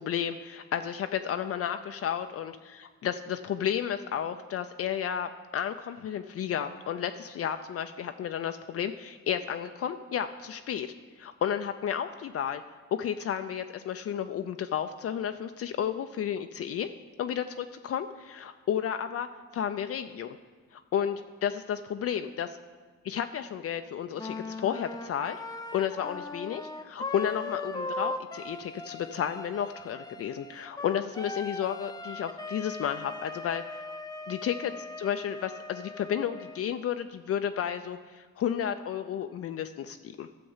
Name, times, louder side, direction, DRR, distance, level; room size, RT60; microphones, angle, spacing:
voice 1, 0.0-10.9 11.2-12.6 12.9-16.9 17.2-20.4 20.7-22.6 23.0-25.4 25.7-33.6 34.3-34.7 35.0-40.3, left 9 dB, 50° left, 8 dB, 0.5 m, -32 dB
Wind instrument woodwind instrument, 24.2-36.6, left 2 dB, 15° left, 0.7 m, -39 dB
12.5 x 6.9 x 5.5 m, 1.5 s
cardioid pair, 90°, 30 cm